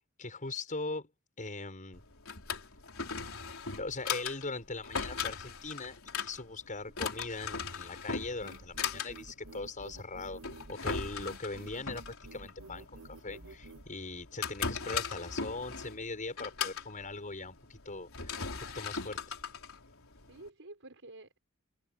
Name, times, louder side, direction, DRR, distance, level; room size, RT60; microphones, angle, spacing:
voice 1, 0.2-1.1 1.4-2.0 3.8-10.4 10.7-19.3, left 3 dB, 40° left, 5.9 m, -40 dB
Drawer open or close, 1.9-20.5, left 5 dB, 70° left, 4.5 m, -39 dB
voice 2, 6.6-7.0 14.7-15.1 20.2-21.4, right 2 dB, 65° right, 6.0 m, -52 dB
sound 1, 8.4-13.9, right 2 dB, 85° right, 1.5 m, -50 dB
head